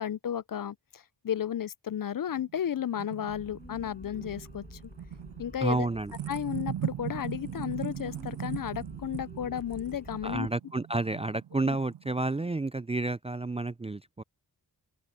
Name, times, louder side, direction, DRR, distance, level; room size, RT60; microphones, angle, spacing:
voice 1, 0.0-4.8 5.4-5.9 6.3-10.5 11.7-11.8, left 9 dB, 55° left, 0.5 m, -33 dB
sound 1, 2.4-12.5, right 11 dB, 85° right, 0.5 m, -40 dB
sound 2, 3.3-10.5, left 1 dB, 20° left, 7.9 m, -49 dB
voice 2, 5.6-6.1 10.2-14.2, right 2 dB, 15° right, 0.4 m, -30 dB
open air
cardioid pair, 50°, 42 cm